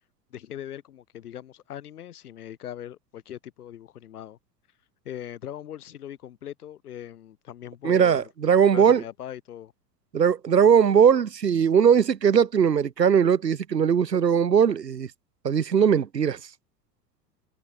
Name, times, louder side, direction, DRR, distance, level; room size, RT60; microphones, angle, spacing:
voice 1, 0.3-4.4 5.0-8.3 8.7-9.7, left 11 dB, 65° left, 1.4 m, -40 dB
voice 2, 7.8-9.0 10.1-15.1 15.4-16.4, right 7 dB, 85° right, 0.7 m, -20 dB
figure-of-eight pair, 90°, 48 cm